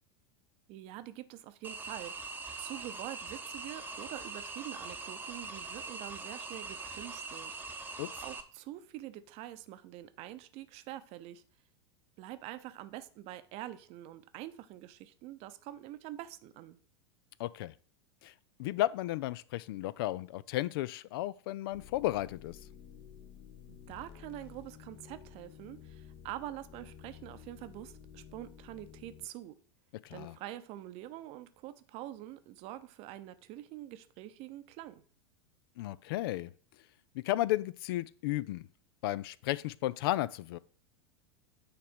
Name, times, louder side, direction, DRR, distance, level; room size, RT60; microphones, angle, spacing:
voice 1, 0.7-2.2 2.6-7.6 8.2-11.4 12.2-16.8 23.7-29.6 30.1-35.0, right 14 dB, 45° right, 0.7 m, -45 dB
sound 1, 1.6-8.4, right 4 dB, 15° right, 0.8 m, -42 dB
voice 2, 17.4-17.7 18.2-18.3 18.6-22.6 30.1-30.3 35.8-36.5 37.1-38.7 39.0-40.6, left 15 dB, 55° left, 0.4 m, -33 dB
sound 2, 21.7-29.3, left 8 dB, 35° left, 0.9 m, -52 dB
8.9 x 3.4 x 5.1 m
figure-of-eight pair, 85°, 15 cm